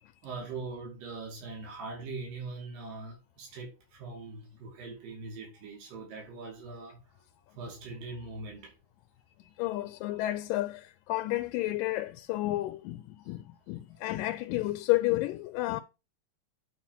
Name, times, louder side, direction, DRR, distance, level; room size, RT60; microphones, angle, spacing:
voice 1, 0.2-7.0 7.5-8.7 13.3-13.4, right 3 dB, 85° right, 4.3 m, -41 dB
voice 2, 9.6-15.8, left 17 dB, 85° left, 2.2 m, -31 dB
9.5 x 4.5 x 5.3 m
omnidirectional pair, 3.8 m